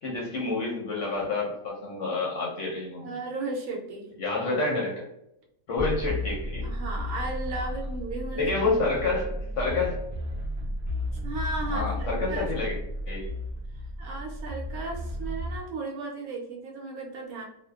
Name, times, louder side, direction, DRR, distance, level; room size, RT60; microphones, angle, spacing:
voice 1, 0.0-3.2 4.2-5.0 5.7-6.7 8.3-10.0 11.7-12.8 13.1-13.3, left 3 dB, 65° left, -4 dB, 0.8 m, -28 dB
voice 2, 3.0-4.1 6.6-9.7 11.2-12.5 14.0-17.4, right 2 dB, 70° right, 0 dB, 0.9 m, -36 dB
sound 1, 5.8-15.6, left 1 dB, 55° right, 0.5 m, -33 dB
2.6 x 2.1 x 2.2 m, 0.80 s
omnidirectional pair, 1.7 m